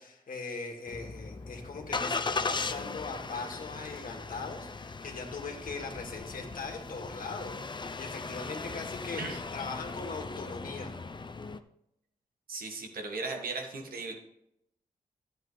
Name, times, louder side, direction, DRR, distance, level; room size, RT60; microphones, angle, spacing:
voice 1, 0.0-7.5 8.0-10.9, left 4 dB, 70° left, 2 dB, 1.9 m, -40 dB
Engine starting, 0.9-11.6, left 4 dB, 30° left, 0.6 m, -38 dB
voice 2, 12.5-14.1, right 3 dB, 80° right, 2 dB, 1.7 m, -37 dB
11.0 x 7.7 x 3.3 m, 0.80 s
cardioid pair, 60°, 15 cm